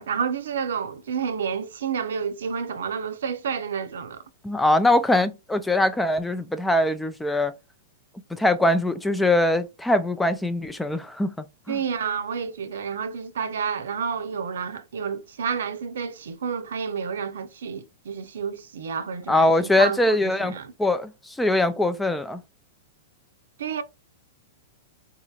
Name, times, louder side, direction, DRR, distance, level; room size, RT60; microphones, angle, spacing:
voice 1, 0.0-4.2 11.7-20.7 23.6-23.8, right 6 dB, 90° right, 0.6 m, -30 dB
voice 2, 4.4-7.5 8.3-11.8 19.3-20.5 20.8-22.4, left 1 dB, 5° left, 0.3 m, -22 dB
4.1 x 2.8 x 2.3 m
supercardioid pair, 155°, 0 cm